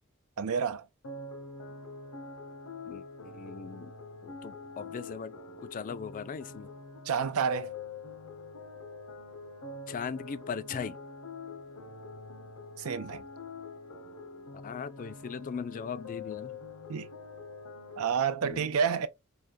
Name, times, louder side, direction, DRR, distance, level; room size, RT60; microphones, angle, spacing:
voice 1, 0.4-0.8 7.1-7.7 12.8-13.2 16.9-17.1 18.0-19.1, right 6 dB, 70° right, 0.4 m, -29 dB
sound 1, 1.0-18.2, left 3 dB, 80° left, 0.8 m, -45 dB
voice 2, 2.9-3.9 4.2-6.7 9.9-11.0 14.6-16.5 18.4-18.7, left 6 dB, 35° left, 0.3 m, -39 dB
4.8 x 2.2 x 2.6 m
head